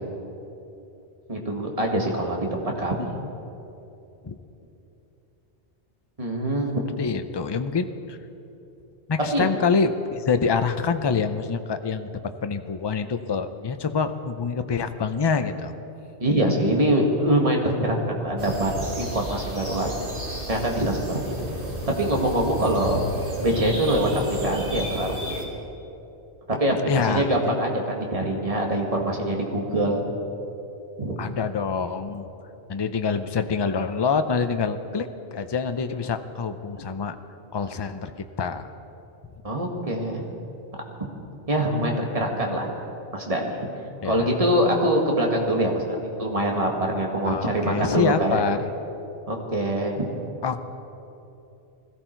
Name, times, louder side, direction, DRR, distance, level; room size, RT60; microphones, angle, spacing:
voice 1, 1.3-3.0 6.2-6.8 9.3-9.5 16.2-19.9 20.5-21.6 22.0-23.0 23.4-25.4 26.5-30.0 31.0-31.1 39.4-40.2 41.5-42.7 43.1-43.7 44.0-48.4 49.3-50.1, right 1 dB, 30° right, 0 dB, 1.9 m, -24 dB
voice 2, 7.0-8.2 9.1-12.1 12.4-15.7 26.9-27.3 31.2-32.3 32.7-37.2 37.5-38.1 38.4-38.6 44.0-44.3 47.2-48.6 50.4-50.6, left 5 dB, 30° left, 9 dB, 0.5 m, -26 dB
sound 1, 18.4-25.4, right 1 dB, 50° right, 2.3 m, -32 dB
20.5 x 14.5 x 4.5 m, 2.9 s
omnidirectional pair, 1.2 m